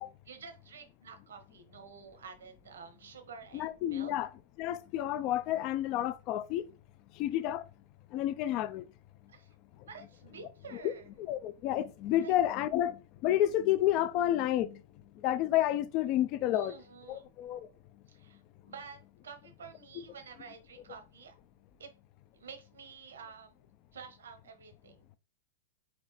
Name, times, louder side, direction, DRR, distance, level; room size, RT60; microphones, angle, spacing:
voice 1, 0.2-4.1 9.3-9.5 9.9-11.1 12.2-12.3 16.5-17.3 18.1-21.3 21.8-21.9 22.3-25.0, right 6 dB, 80° right, 1.1 m, -50 dB
voice 2, 3.5-4.3 4.6-6.7 7.2-7.6 8.1-8.8 10.7-10.9 11.2-13.0 13.2-14.8 15.2-16.7 17.1-17.7 20.0-20.1, left 12 dB, 45° left, 0.4 m, -30 dB
4.3 x 2.9 x 4.1 m
hypercardioid pair, 120°, 0 cm